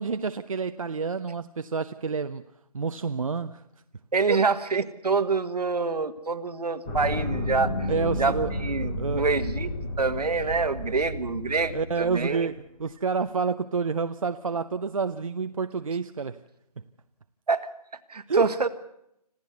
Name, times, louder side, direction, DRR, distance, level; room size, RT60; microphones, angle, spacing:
voice 1, 0.0-2.4 2.7-3.6 4.3-4.4 7.9-8.5 8.8-9.3 11.7-16.4 18.3-18.5, right 5 dB, 55° right, 0.7 m, -29 dB
voice 2, 4.1-7.9 8.2-12.5 17.5-17.6 18.1-18.7, right 4 dB, 75° right, 1.7 m, -26 dB
sound 1, 6.9-12.4, left 1 dB, 5° left, 0.8 m, -32 dB
26.5 x 14.0 x 8.2 m
hypercardioid pair, 175°, 20 cm